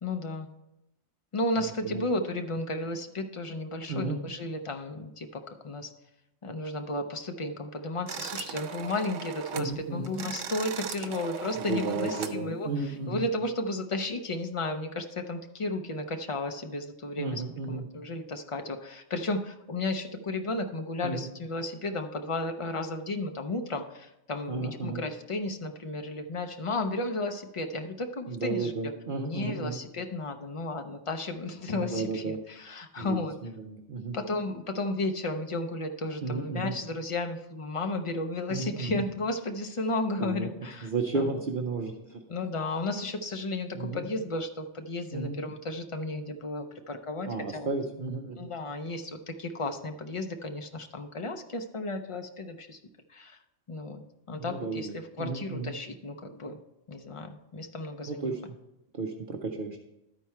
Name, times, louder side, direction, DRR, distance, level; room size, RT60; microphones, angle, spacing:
voice 1, 0.0-0.5 1.3-5.9 6.4-17.4 17.7-28.7 29.2-33.3 34.1-40.9 41.1-41.3 42.3-47.7 48.4-52.8 53.1-53.4 53.7-56.6 56.9-58.3, left 2 dB, 60° left, 6 dB, 0.3 m, -33 dB
voice 2, 1.6-2.1 3.9-4.2 9.6-10.1 11.6-13.3 17.2-17.9 21.0-21.3 24.5-25.0 28.3-29.8 31.7-32.4 33.0-34.2 36.2-36.8 38.5-39.0 40.2-40.5 40.8-42.2 43.7-44.0 45.1-45.4 47.3-48.5 54.4-55.7 58.1-58.6 58.9-59.8, right 3 dB, 50° right, 2 dB, 0.8 m, -33 dB
sound 1, 8.1-9.7 10.0-12.4, right 8 dB, 90° right, 1.0 m, -38 dB
12.0 x 4.6 x 4.3 m, 0.90 s
omnidirectional pair, 1.3 m